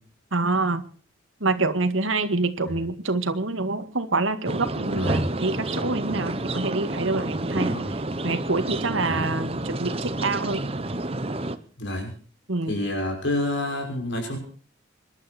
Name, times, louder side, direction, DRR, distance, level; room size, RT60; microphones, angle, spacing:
voice 1, 0.3-0.8 1.4-7.7 8.2-10.6 12.5-12.8, right 3 dB, 80° right, 9 dB, 2.0 m, -26 dB
sound 1, 4.5-11.6, right 2 dB, 30° right, 1.0 m, -29 dB
voice 2, 4.9-5.2 7.6-7.9 9.0-9.3 11.8-12.1 12.7-14.4, left 1 dB, 65° left, 3 dB, 6.2 m, -29 dB
26.0 x 12.0 x 4.5 m, 0.41 s
head